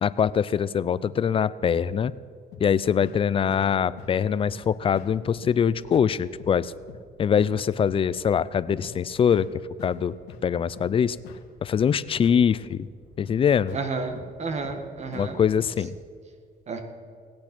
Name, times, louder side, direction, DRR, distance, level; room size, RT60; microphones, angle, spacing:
voice 1, 0.0-2.1 2.6-6.7 7.2-9.5 9.8-10.1 10.4-11.2 11.6-12.9 13.2-13.8 15.1-16.0, left 7 dB, 35° left, 17 dB, 0.4 m, -23 dB
sound 1, 2.5-15.9, left 5 dB, 85° left, 1.5 m, -47 dB
voice 2, 13.7-15.4 16.7-16.8, right 4 dB, 40° right, 6 dB, 1.6 m, -31 dB
18.5 x 8.7 x 6.0 m, 2.1 s
cardioid pair, 110°, 17 cm